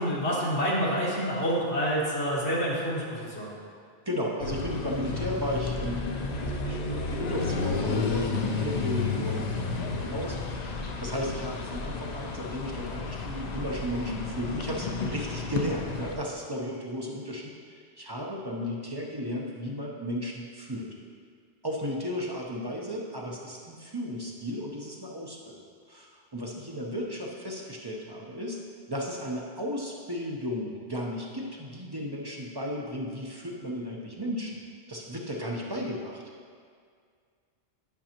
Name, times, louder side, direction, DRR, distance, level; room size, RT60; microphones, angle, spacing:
voice 1, 0.0-3.5, equal, 75° left, -6 dB, 1.9 m, -28 dB
voice 2, 4.1-20.9 21.6-25.6 25.9-28.6 28.9-34.6 34.9-36.2, equal, 25° right, -2 dB, 0.6 m, -34 dB
sound 1, 4.4-16.2, left 4 dB, 50° left, 0.5 m, -32 dB
10.5 x 5.4 x 2.9 m, 2.1 s
omnidirectional pair, 1.1 m